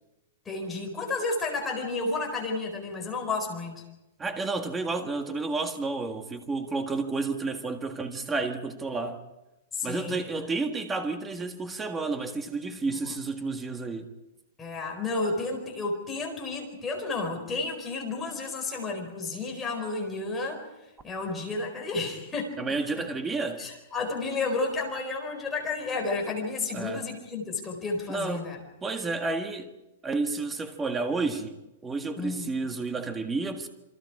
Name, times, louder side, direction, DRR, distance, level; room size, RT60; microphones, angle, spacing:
voice 1, 0.5-3.8 9.7-10.5 14.6-20.6 21.0-22.6 23.6-28.6 32.2-32.5, left 3 dB, 10° left, 4.5 m, -31 dB
voice 2, 4.2-9.2 9.8-14.1 22.6-23.6 26.7-27.0 28.1-28.5 28.8-29.7 30.0-31.5 31.8-33.7, right 3 dB, 10° right, 1.7 m, -31 dB
28.0 x 24.0 x 4.9 m
hypercardioid pair, 170°, 0 cm